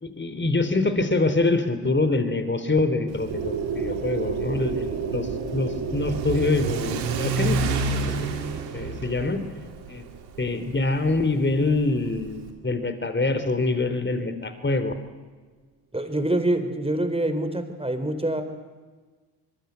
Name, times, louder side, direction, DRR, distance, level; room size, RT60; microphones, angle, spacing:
voice 1, 0.0-8.3 8.7-9.4 9.9-10.0 10.4-15.0, left 2 dB, 20° left, 10 dB, 3.6 m, -25 dB
Car / Accelerating revving vroom, 3.1-12.5, right 4 dB, 90° right, 2.5 m, -31 dB
sound 1, 3.3-11.1, right 6 dB, 65° right, 5.4 m, -33 dB
voice 2, 15.9-18.4, right 1 dB, 10° right, 8 dB, 4.7 m, -25 dB
25.5 x 22.0 x 8.1 m, 1.4 s
hypercardioid pair, 50°, 49 cm